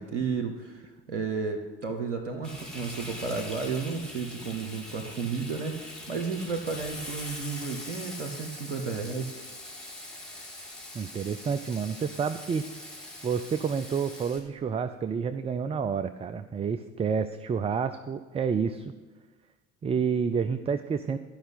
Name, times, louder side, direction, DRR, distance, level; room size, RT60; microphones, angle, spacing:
voice 1, 0.0-9.3, right 5 dB, 80° right, 4 dB, 0.8 m, -33 dB
Frying (food), 2.4-14.4, left 1 dB, ahead, 2.9 m, -42 dB
voice 2, 10.9-12.6 13.2-18.9 19.8-21.2, right 6 dB, 15° right, 10 dB, 0.4 m, -29 dB
12.0 x 5.5 x 8.2 m, 1.4 s
figure-of-eight pair, 55°, 36 cm